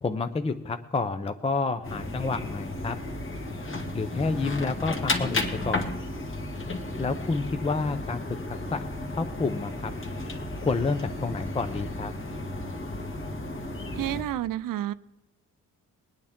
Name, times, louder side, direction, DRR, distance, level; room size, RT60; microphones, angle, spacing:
voice 1, 0.0-3.0 3.9-6.0 7.0-8.2 8.7-8.8 9.1-9.9 10.6-12.1, left 4 dB, 15° left, 9 dB, 0.5 m, -29 dB
sound 1, 1.8-14.2, left 2 dB, 35° left, 1.7 m, -33 dB
voice 2, 13.9-14.9, right 12 dB, 65° right, 16 dB, 0.6 m, -30 dB
22.0 x 9.4 x 3.6 m, 1.1 s
cardioid pair, 130°, 35 cm